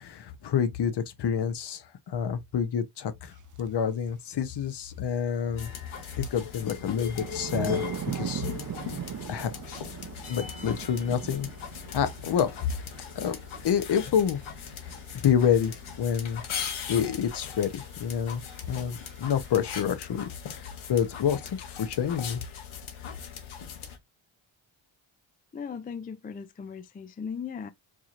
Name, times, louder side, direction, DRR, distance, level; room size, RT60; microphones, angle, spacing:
voice 1, 0.0-3.3 3.6-5.7 6.2-7.8 8.1-8.5 9.3-9.5 10.3-11.5 11.9-12.5 13.2-13.4 13.6-14.4 15.2-16.4 16.9-18.4 18.7-20.3 20.6-22.4, left 8 dB, 55° left, 0.8 m, -28 dB
sound 1, 3.6-3.7 6.0-19.8, right 9 dB, 40° right, 0.5 m, -41 dB
sound 2, 5.6-24.0, left 8 dB, 75° left, 1.3 m, -39 dB
voice 2, 25.5-27.7, left 6 dB, 20° left, 0.3 m, -37 dB
4.7 x 2.9 x 2.4 m
cardioid pair, 95°, 49 cm